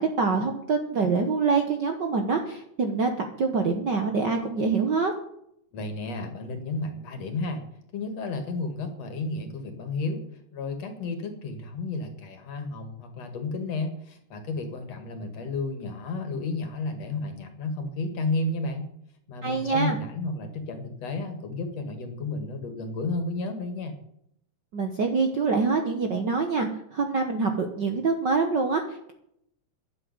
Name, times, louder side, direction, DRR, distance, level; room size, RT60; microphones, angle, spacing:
voice 1, 0.0-5.1 19.4-20.0 24.7-29.1, right 4 dB, 55° right, 5 dB, 1.3 m, -25 dB
voice 2, 5.7-7.6 7.9-10.2 10.5-18.8 19.3-24.0, left 3 dB, 60° left, 7 dB, 3.0 m, -32 dB
11.0 x 7.8 x 9.6 m, 0.74 s
omnidirectional pair, 3.4 m